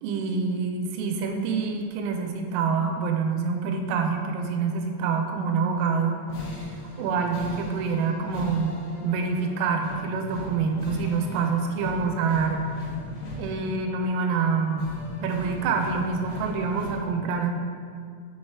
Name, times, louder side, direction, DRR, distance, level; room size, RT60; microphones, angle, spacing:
voice 1, 0.0-6.2 6.5-6.7 7.0-12.6 13.4-14.9 15.2-17.6, right 5 dB, 85° right, 3 dB, 3.2 m, -26 dB
sound 1, 5.6-17.0, left 1 dB, 85° left, 4.0 m, -39 dB
8.9 x 3.2 x 4.6 m, 2.2 s
omnidirectional pair, 5.7 m